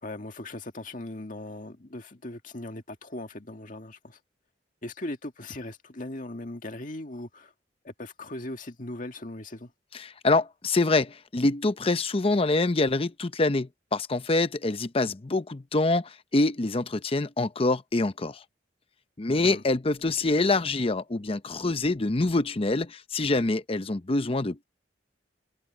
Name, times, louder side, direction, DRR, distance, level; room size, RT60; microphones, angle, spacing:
voice 1, 0.0-4.2 4.8-7.5 7.8-9.7 19.4-19.6, left 1 dB, 50° left, 1.9 m, -39 dB
voice 2, 9.9-18.4 19.2-24.6, left 2 dB, 30° left, 0.7 m, -25 dB
head